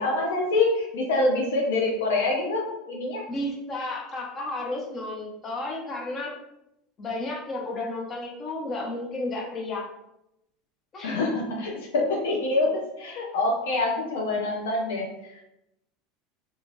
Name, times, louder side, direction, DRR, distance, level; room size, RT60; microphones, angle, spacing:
voice 1, 0.0-3.2 11.0-15.4, left 2 dB, 80° left, 0 dB, 0.5 m, -26 dB
voice 2, 3.3-6.3 7.0-9.8 10.9-11.2, left 2 dB, 35° left, 0 dB, 0.8 m, -32 dB
2.5 x 2.4 x 3.0 m, 0.85 s
hypercardioid pair, 85°, 0 cm